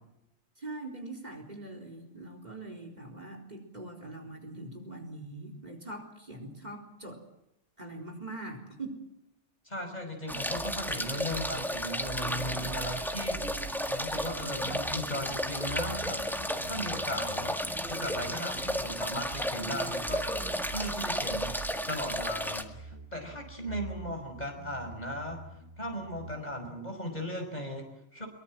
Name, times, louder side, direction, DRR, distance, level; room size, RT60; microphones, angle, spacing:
voice 1, 0.6-7.2 7.8-9.0, right 2 dB, 40° right, 4 dB, 4.1 m, -42 dB
voice 2, 9.7-20.2 20.7-21.5 21.9-25.4 25.8-28.3, equal, 35° left, 3 dB, 5.7 m, -37 dB
sound 1, 10.3-22.6, equal, ahead, 1.8 m, -33 dB
sound 2, 10.5-26.5, right 4 dB, 85° right, 1.8 m, -46 dB
23.0 x 23.0 x 7.5 m, 0.86 s
omnidirectional pair, 1.2 m